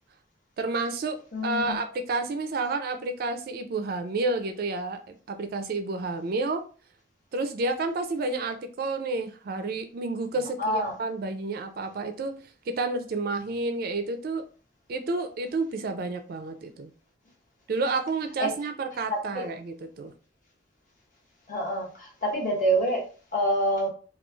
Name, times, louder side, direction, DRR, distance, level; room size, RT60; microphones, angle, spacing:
voice 1, 0.6-6.6 7.3-12.4 12.7-14.4 14.9-16.9 17.7-20.1, right 3 dB, 50° right, 7 dB, 0.3 m, -30 dB
voice 2, 1.3-1.8 10.6-10.9 18.4-18.5 19.1-19.4 21.5-23.9, right 1 dB, 40° left, -3 dB, 1.0 m, -27 dB
3.0 x 2.3 x 2.3 m, 0.37 s
head